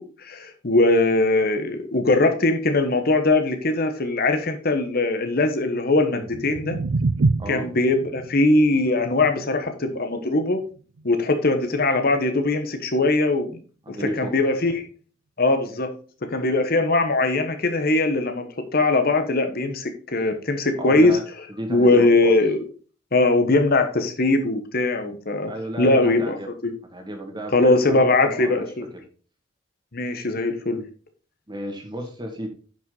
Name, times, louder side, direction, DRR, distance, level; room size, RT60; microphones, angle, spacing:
voice 1, 0.0-6.8 7.5-10.6 11.0-13.5 13.9-14.9 15.4-15.9 16.3-21.2 21.7-22.6 23.1-25.5 25.8-26.4 26.6-26.7 27.5-28.9 29.9-30.8, left 2 dB, 50° left, 7 dB, 1.2 m, -21 dB
sound 1, 6.1-12.2, right 3 dB, 70° right, 0.5 m, -29 dB
voice 2, 13.9-14.4 20.8-21.2 21.5-22.4 25.5-26.5 26.9-28.7 28.9-29.0 31.5-32.5, equal, 25° right, 3 dB, 2.1 m, -33 dB
10.0 x 5.9 x 4.0 m, 0.39 s
head